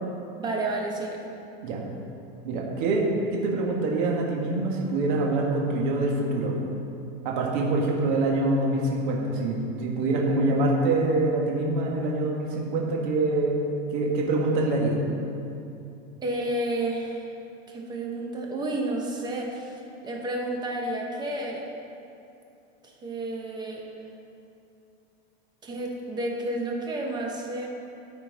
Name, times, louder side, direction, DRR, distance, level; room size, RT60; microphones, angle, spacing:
voice 1, 0.4-1.2 16.2-17.3 17.7-21.6 22.8-23.8 25.6-27.7, right 1 dB, 15° right, -1 dB, 0.8 m, -31 dB
voice 2, 2.4-3.0 3.3-6.6 7.2-13.6 13.9-15.0, right 2 dB, 55° right, -2 dB, 1.6 m, -25 dB
13.0 x 4.5 x 4.1 m, 2.7 s
supercardioid pair, 165°, 30 cm